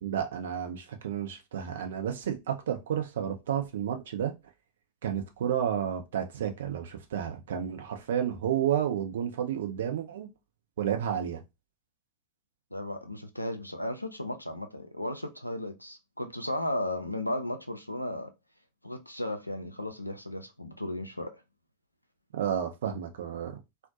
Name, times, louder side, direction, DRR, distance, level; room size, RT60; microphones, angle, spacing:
voice 1, 0.0-4.3 5.0-10.3 10.8-11.4 22.3-23.6, right 9 dB, 60° right, 0.6 m, -31 dB
voice 2, 12.7-18.3 18.8-21.3, left 1 dB, 90° left, 0.4 m, -35 dB
2.4 x 2.1 x 2.7 m
figure-of-eight pair, 90°, 0 cm